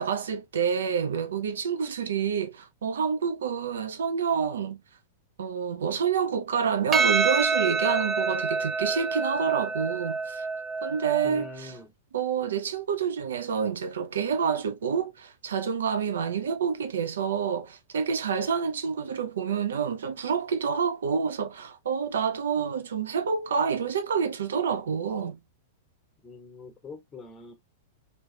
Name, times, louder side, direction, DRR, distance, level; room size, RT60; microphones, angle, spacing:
voice 1, 0.0-4.8 5.4-10.5 10.8-11.7 12.1-25.4, right 6 dB, 75° right, 0.7 m, -28 dB
Percussion, 6.9-11.5, right 4 dB, 25° right, 0.5 m, -27 dB
voice 2, 11.2-11.9 26.2-27.5, left 3 dB, 20° left, 1.3 m, -44 dB
3.2 x 2.9 x 3.2 m
figure-of-eight pair, 100°, 0 cm